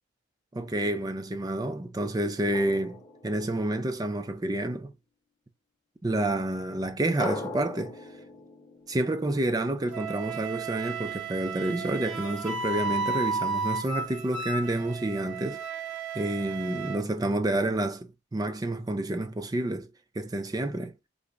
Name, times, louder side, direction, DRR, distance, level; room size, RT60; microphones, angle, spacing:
voice 1, 0.5-4.9 6.0-7.9 8.9-15.6 16.1-19.9 20.2-20.9, right 1 dB, 20° right, 0.4 m, -29 dB
Drum, 2.5-4.1 7.2-9.9, left 2 dB, 20° left, 0.6 m, -40 dB
Wind instrument woodwind instrument, 9.9-17.0, right 4 dB, 70° right, 0.8 m, -33 dB
3.8 x 2.0 x 3.4 m
head